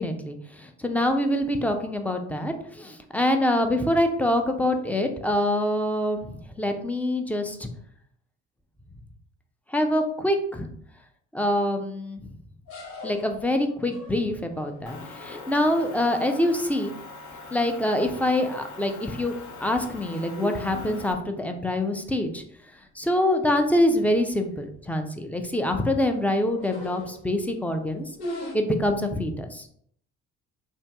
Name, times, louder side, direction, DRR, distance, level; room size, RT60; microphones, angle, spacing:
voice 1, 0.0-7.7 9.7-10.7 11.3-12.2 13.0-16.9 17.5-19.3 19.6-22.4 23.0-28.1 28.5-29.7, left 1 dB, 5° left, 5 dB, 0.4 m, -25 dB
sound 1, 12.7-16.0 17.6-17.9 18.3-18.7 19.1-21.6 22.1-22.2 22.4-22.5 23.4-23.5 23.8-23.9 24.3-24.7 25.3-27.5 28.1-28.5, left 1 dB, 65° left, 1.0 m, -41 dB
Motor vehicle (road) / Engine, 14.9-21.1, left 4 dB, 45° left, 0.6 m, -43 dB
2.6 x 2.3 x 3.4 m, 0.65 s
hypercardioid pair, 50°, 39 cm